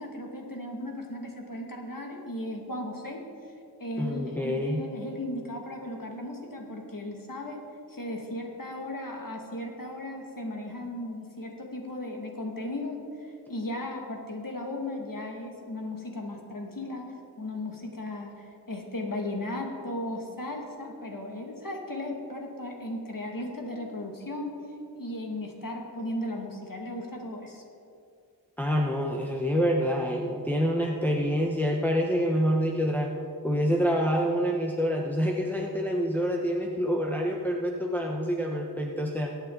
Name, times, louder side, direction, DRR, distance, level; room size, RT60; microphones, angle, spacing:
voice 1, 0.0-3.2 3.8-7.6 7.9-24.6 25.0-27.6, left 1 dB, 50° left, 1 dB, 2.3 m, -36 dB
voice 2, 4.0-4.8 28.6-33.1 33.4-39.3, equal, 5° left, -1 dB, 1.1 m, -27 dB
22.5 x 8.8 x 4.0 m, 2.5 s
wide cardioid pair, 65°, 41 cm